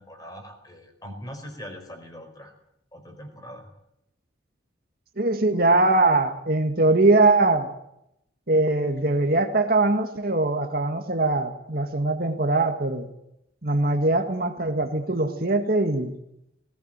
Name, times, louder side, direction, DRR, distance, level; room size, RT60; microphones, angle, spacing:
voice 1, 0.0-2.5 2.9-3.7, equal, 20° left, 4 dB, 4.7 m, -41 dB
voice 2, 5.2-7.7 8.5-13.1 13.6-16.1, right 2 dB, 50° right, 6 dB, 1.8 m, -22 dB
19.5 x 17.5 x 8.9 m, 0.80 s
head